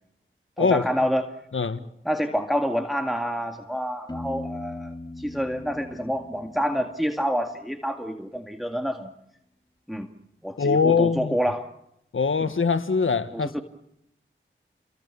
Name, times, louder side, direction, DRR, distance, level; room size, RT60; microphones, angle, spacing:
voice 1, 0.6-1.3 2.1-9.1 9.9-10.1 10.4-11.7 13.3-13.6, equal, ahead, 2.0 m, -27 dB
voice 2, 1.5-1.8 10.6-11.4 12.1-13.6, left 5 dB, 75° left, 1.7 m, -22 dB
Piano, 4.1-7.8, left 2 dB, 20° left, 2.7 m, -39 dB
29.0 x 23.0 x 7.1 m
cardioid pair, 45°, 21 cm